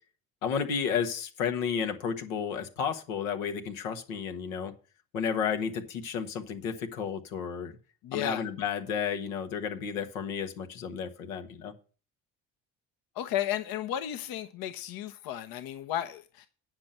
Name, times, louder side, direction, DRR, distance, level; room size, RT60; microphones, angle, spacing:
voice 1, 0.4-4.7 5.1-7.7 8.1-11.7, left 7 dB, 90° left, 1.4 m, -32 dB
voice 2, 8.0-8.4 13.1-16.5, left 11 dB, 60° left, 0.9 m, -33 dB
9.6 x 6.1 x 6.5 m
hypercardioid pair, 60°, 39 cm